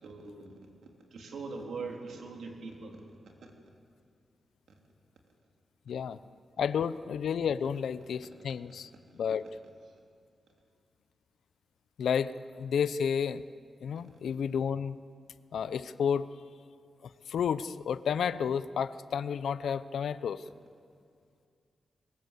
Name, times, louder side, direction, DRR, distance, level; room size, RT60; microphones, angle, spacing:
voice 1, 0.0-3.0 3.4-3.5, right 4 dB, 70° right, 1 dB, 3.4 m, -42 dB
voice 2, 5.9-6.2 6.6-9.4 12.0-13.4 13.8-15.0 15.5-16.3 17.0-20.4, left 7 dB, 85° left, 15 dB, 0.6 m, -31 dB
22.5 x 20.5 x 8.4 m, 2.3 s
wide cardioid pair, 175°, 0 cm